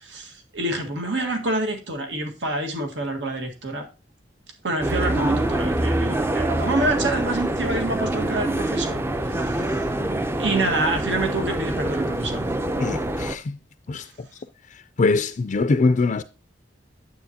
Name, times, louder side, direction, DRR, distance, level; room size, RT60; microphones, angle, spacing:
voice 1, 0.0-3.9 4.6-9.0 9.3-9.7 10.4-12.5 13.9-14.0, right 2 dB, 80° right, 1.7 m, -27 dB
sound 1, 4.8-13.4, right 1 dB, 15° right, 0.5 m, -25 dB
voice 2, 12.8-13.6 13.9-14.1 14.7-16.2, left 3 dB, 45° left, 0.4 m, -23 dB
9.3 x 8.2 x 2.8 m
head